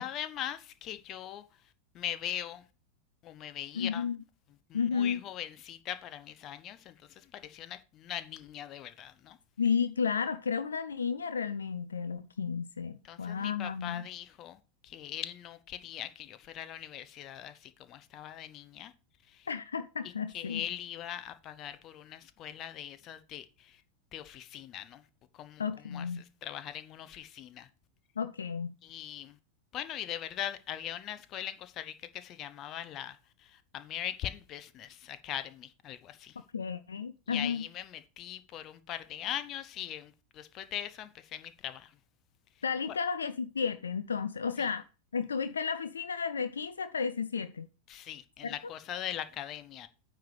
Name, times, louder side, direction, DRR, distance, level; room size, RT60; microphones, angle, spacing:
voice 1, 0.0-1.4 1.9-2.6 3.2-4.0 4.7-9.4 13.1-14.6 14.8-18.9 19.3-19.5 20.3-23.8 24.1-25.0 25.4-26.1 26.4-27.7 28.8-29.4 29.7-33.2 33.4-36.3 37.3-41.9 44.6-44.7 47.9-49.9, left 11 dB, 35° left, 0.7 m, -41 dB
voice 2, 3.7-4.2 4.7-5.2 9.6-14.1 19.5-20.7 25.6-26.2 28.2-28.8 36.5-37.6 42.6-44.8 45.1-47.7 48.4-48.7, left 6 dB, 70° left, 0.4 m, -32 dB
9.3 x 3.4 x 6.5 m
figure-of-eight pair, 90°, 0 cm